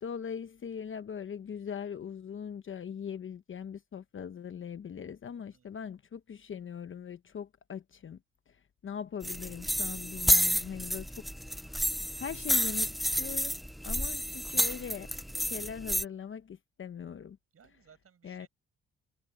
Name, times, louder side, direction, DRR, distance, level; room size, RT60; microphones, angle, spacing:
voice 1, 0.0-8.2 8.5-11.1 11.6-11.7 12.2-15.1 15.4-17.4 18.2-18.5, left 7 dB, 40° left, 0.9 m, -41 dB
voice 2, 5.5-5.9 17.5-18.5, right 7 dB, 50° right, 6.7 m, -62 dB
sound 1, 9.2-16.0, equal, ahead, 0.4 m, -30 dB
cardioid pair, 90°, 30 cm